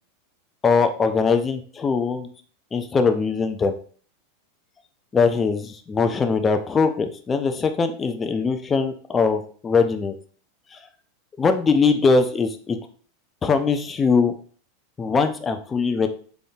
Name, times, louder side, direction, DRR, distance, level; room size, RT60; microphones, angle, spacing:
voice 1, 0.6-2.3 2.7-3.7 5.1-10.1 10.7-10.8 11.4-12.8 13.4-14.3 15.0-16.1, left 4 dB, 20° left, 7 dB, 0.4 m, -21 dB
4.0 x 3.5 x 2.3 m, 0.43 s
supercardioid pair, 135°, 0 cm